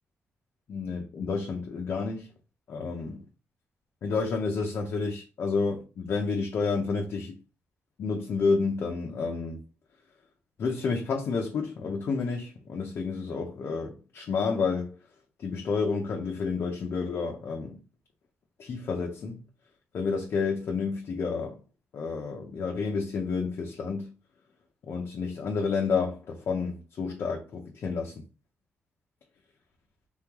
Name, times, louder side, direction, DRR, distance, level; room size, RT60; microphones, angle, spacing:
voice 1, 0.7-2.3 2.7-3.2 4.0-7.4 8.0-9.6 10.6-14.9 15.4-17.7 18.6-19.4 19.9-21.6 21.9-24.1 24.9-28.1, left 4 dB, 65° left, 0.8 m, -30 dB
4.0 x 3.8 x 3.0 m
wide cardioid pair, 145°, 5 cm